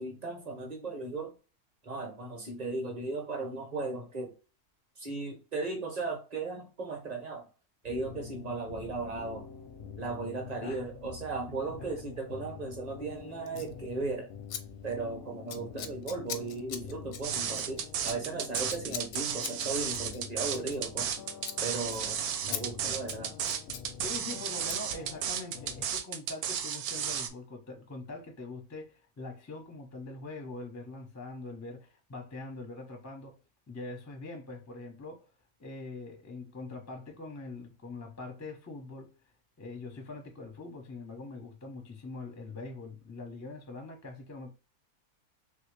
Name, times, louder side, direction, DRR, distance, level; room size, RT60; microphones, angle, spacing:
voice 1, 0.0-1.3 1.8-4.4 5.0-7.5 7.8-9.5 10.0-14.3 14.8-21.1 21.6-23.4, right 3 dB, 35° right, 0.7 m, -36 dB
sound 1, 7.9-25.9, left 6 dB, 65° left, 0.6 m, -47 dB
Scissors, 13.5-13.7 14.5-14.6 14.9-15.1 15.5-21.1 21.4-21.6 21.9-22.0 22.5-22.6 22.9-23.9 24.7-24.8, left 8 dB, 85° left, 1.1 m, -41 dB
sound 2, 17.2-27.3, right 8 dB, 75° right, 1.0 m, -33 dB
voice 2, 24.0-33.4 33.7-35.3 35.6-39.1 39.6-44.5, left 3 dB, 20° left, 0.4 m, -43 dB
3.3 x 2.7 x 3.2 m
omnidirectional pair, 1.6 m